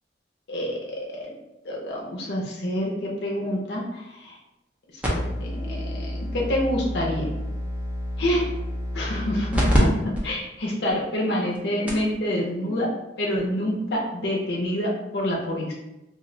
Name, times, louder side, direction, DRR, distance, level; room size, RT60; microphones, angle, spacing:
voice 1, 0.5-1.3 1.6-4.4 5.1-7.3 8.2-8.5 8.9-12.9 13.2-15.7, equal, 65° left, -3 dB, 0.6 m, -27 dB
sound 1, 5.0-9.8 10.1-10.2 10.9-11.0 11.5-11.6 11.9-12.1 13.4-13.5, equal, 10° right, 0.6 m, -27 dB
2.4 x 2.1 x 3.7 m, 0.97 s
head